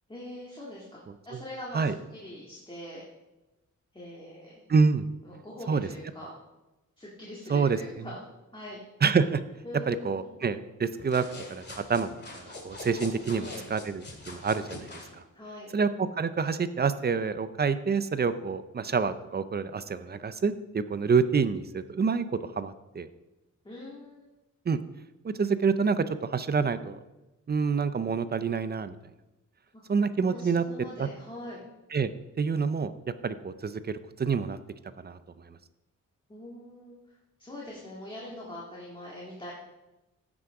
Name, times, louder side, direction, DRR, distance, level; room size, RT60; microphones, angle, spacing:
voice 1, 0.1-1.0 1.2-3.0 3.9-4.6 5.2-6.3 7.0-8.2 8.5-8.8 9.6-10.3 13.3-13.7 15.3-15.7 23.6-24.3 29.7-29.8 30.3-31.6 36.3-36.9 37.4-39.5, left 1 dB, 15° left, -5 dB, 1.9 m, -42 dB
voice 2, 4.7-5.1 5.7-5.8 7.5-8.1 9.0-9.4 9.9-12.1 12.3-14.9 15.7-15.9 16.2-23.1 24.7-24.8 25.2-27.0 27.5-29.0 29.9-30.6 31.0-31.1 31.9-32.1 32.4-32.9 33.2-34.6 35.0-35.2 35.4-35.6, right 5 dB, 30° right, 13 dB, 0.5 m, -27 dB
sound 1, 11.0-15.1, left 2 dB, 35° left, 2.1 m, -43 dB
15.5 x 6.1 x 4.8 m, 1.0 s
wide cardioid pair, 155°, 31 cm